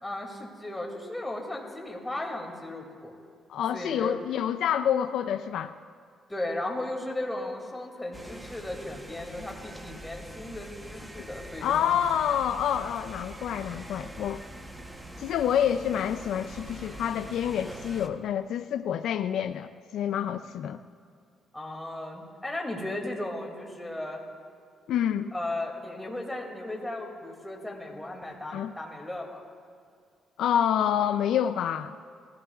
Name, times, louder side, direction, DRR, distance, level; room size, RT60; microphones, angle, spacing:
voice 1, 0.0-3.2 3.7-4.2 6.3-12.0 21.5-24.2 25.3-29.4, left 1 dB, 10° left, 0 dB, 2.4 m, -36 dB
voice 2, 3.5-5.7 11.6-14.4 15.2-20.8 24.9-25.3 28.5-28.7 30.4-32.0, left 9 dB, 75° left, 8 dB, 0.4 m, -27 dB
sound 1, 8.1-18.1, right 1 dB, 10° right, 1.0 m, -43 dB
19.5 x 15.5 x 2.4 m, 2.3 s
cardioid pair, 90°, 0 cm